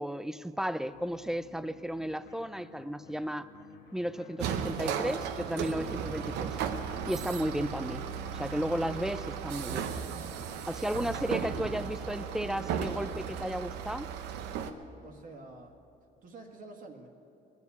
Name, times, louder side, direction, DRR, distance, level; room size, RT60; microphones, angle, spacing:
voice 1, 0.0-3.5 3.9-6.6 7.1-8.1 8.3-9.9 10.7-14.1, equal, 5° right, 14 dB, 0.4 m, -34 dB
sound 1, 0.8-13.9, left 7 dB, 85° left, 1.2 m, -55 dB
sound 2, 4.4-14.7, right 7 dB, 90° right, 0.9 m, -35 dB
voice 2, 15.0-15.8 16.2-17.1, right 2 dB, 55° right, 3 dB, 1.7 m, -49 dB
21.0 x 7.2 x 8.2 m, 2.8 s
cardioid pair, 110°, 17 cm